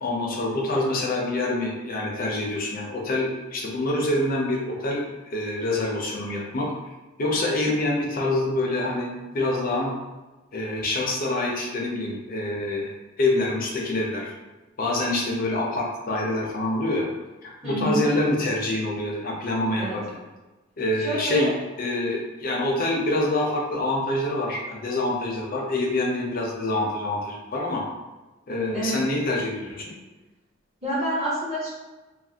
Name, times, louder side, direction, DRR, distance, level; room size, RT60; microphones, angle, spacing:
voice 1, 0.0-6.7 7.2-9.9 10.5-12.9 13.2-14.3 14.8-17.1 17.4-20.2 20.8-21.5 21.8-27.8 28.5-30.0, left 2 dB, 45° left, -1 dB, 0.6 m, -26 dB
voice 2, 17.6-18.0 19.8-20.0 21.0-21.5 28.7-28.9 30.8-31.7, right 1 dB, 35° right, -10 dB, 1.1 m, -27 dB
2.6 x 2.4 x 2.7 m, 1.2 s
head